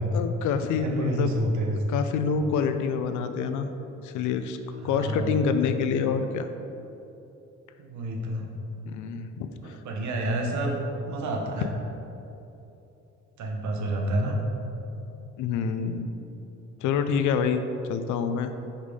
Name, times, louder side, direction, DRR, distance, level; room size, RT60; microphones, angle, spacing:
voice 1, 0.1-1.3 1.9-3.7 4.0-4.6 4.8-6.5 8.8-9.8 15.4-16.1 16.8-17.6 17.9-18.5, left 6 dB, 85° left, 8 dB, 0.5 m, -27 dB
voice 2, 0.8-1.8 4.9-5.5 7.8-8.5 9.6-10.8 11.1-11.7 13.4-14.4, right 1 dB, 70° right, 1 dB, 0.9 m, -29 dB
6.1 x 4.1 x 3.7 m, 2.9 s
cardioid pair, 125°, 30 cm